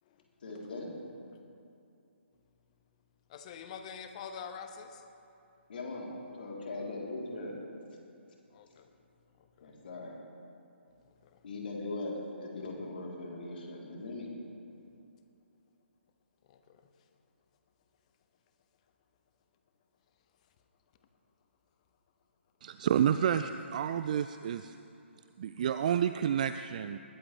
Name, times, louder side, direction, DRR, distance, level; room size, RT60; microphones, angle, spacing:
voice 1, 0.4-0.9 5.7-7.5 9.6-10.1 11.4-14.3, left 2 dB, 50° left, -2 dB, 3.3 m, -40 dB
voice 2, 3.3-5.0 8.5-8.9 9.6-9.7 11.3-11.4 16.5-16.8, left 6 dB, 35° left, 7 dB, 1.0 m, -45 dB
voice 3, 22.6-24.8 25.4-27.0, right 9 dB, 40° right, 11 dB, 0.3 m, -30 dB
20.5 x 14.0 x 3.3 m, 2.8 s
figure-of-eight pair, 140°, 7 cm